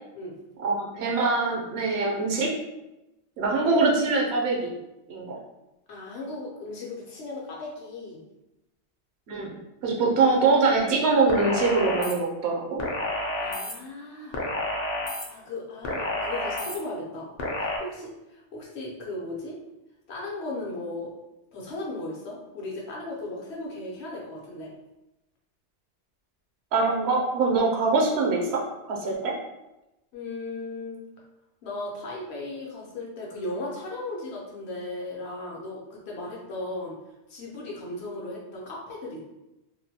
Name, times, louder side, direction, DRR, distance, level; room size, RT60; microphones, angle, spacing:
voice 1, 0.6-2.5 3.4-4.7 5.1-5.4 9.3-9.5 9.8-12.8 26.7-28.6 28.9-29.3, right 3 dB, 75° right, 0 dB, 0.8 m, -23 dB
voice 2, 5.9-8.2 13.4-14.4 15.2-17.3 17.6-19.6 20.1-21.1 21.5-24.7 30.1-31.0 31.6-37.0 37.3-39.2, left 2 dB, 70° left, -3 dB, 1.0 m, -36 dB
sound 1, 11.3-12.1 12.8-13.7 14.3-15.2 15.8-16.8 17.4-17.8, left 1 dB, 55° left, 0.5 m, -29 dB
2.6 x 2.1 x 2.7 m, 0.94 s
omnidirectional pair, 1.1 m